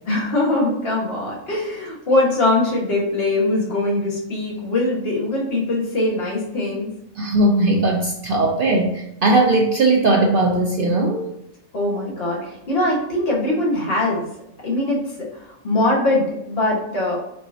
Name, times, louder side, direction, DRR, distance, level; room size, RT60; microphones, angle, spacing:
voice 1, 0.1-6.9 11.7-14.3 14.6-17.2, left 2 dB, 45° left, -4 dB, 1.5 m, -22 dB
voice 2, 7.2-11.2, right 2 dB, 70° right, 1 dB, 0.5 m, -18 dB
4.6 x 4.0 x 2.6 m, 0.83 s
omnidirectional pair, 1.5 m